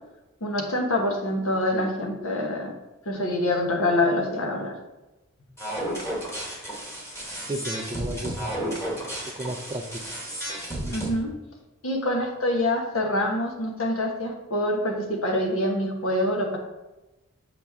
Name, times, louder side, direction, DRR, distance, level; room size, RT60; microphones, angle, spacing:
voice 1, 0.4-2.7 3.0-4.7 10.9-11.3 11.8-16.6, left 1 dB, 75° left, 2 dB, 1.3 m, -25 dB
sound 1, 5.6-11.1, right 1 dB, 15° left, 1.4 m, -33 dB
voice 2, 7.4-9.0 9.4-9.8, right 1 dB, 20° right, 7 dB, 0.4 m, -33 dB
7.0 x 5.2 x 3.5 m, 1.1 s
head